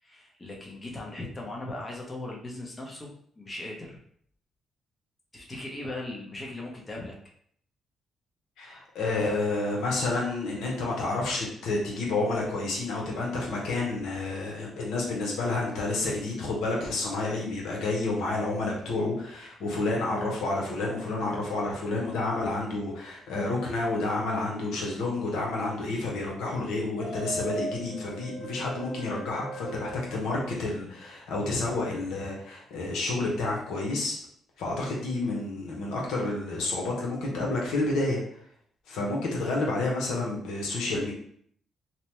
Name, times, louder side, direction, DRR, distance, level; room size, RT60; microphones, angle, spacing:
voice 1, 0.0-4.0 5.3-7.1, left 2 dB, 25° left, -2 dB, 0.7 m, -38 dB
voice 2, 8.6-34.2 34.6-38.2 38.9-41.1, left 2 dB, 85° left, -2 dB, 0.8 m, -30 dB
sound 1, 27.0-31.2, right 1 dB, 15° right, 0.8 m, -39 dB
2.9 x 2.1 x 3.0 m, 0.63 s
cardioid pair, 90°, 0 cm